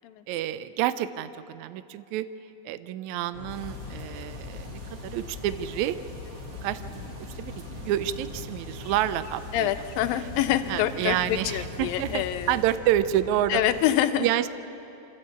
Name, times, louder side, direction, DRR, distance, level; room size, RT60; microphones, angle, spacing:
voice 1, 0.3-2.3 2.6-6.0 6.6-9.7 10.7-13.6 14.2-14.5, right 12 dB, 85° right, 12 dB, 1.6 m, -29 dB
sound 1, 3.3-13.8, left 6 dB, 60° left, 1.8 m, -41 dB
sound 2, 3.5-12.8, right 3 dB, 55° right, 3.0 m, -44 dB
voice 2, 9.5-12.6 13.5-14.3, left 12 dB, 85° left, 9 dB, 2.6 m, -26 dB
26.5 x 14.0 x 8.4 m, 2.9 s
omnidirectional pair, 4.1 m